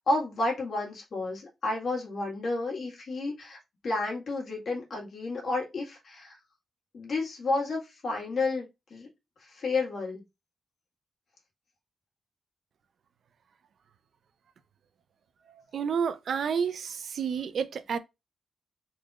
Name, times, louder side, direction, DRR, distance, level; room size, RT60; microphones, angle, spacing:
voice 1, 0.0-6.4 6.9-9.1 9.4-10.2, left 2 dB, 55° left, 1.6 m, -31 dB
voice 2, 15.7-18.0, right 6 dB, 65° right, 0.5 m, -30 dB
3.9 x 2.9 x 2.4 m
cardioid pair, 115°, 0 cm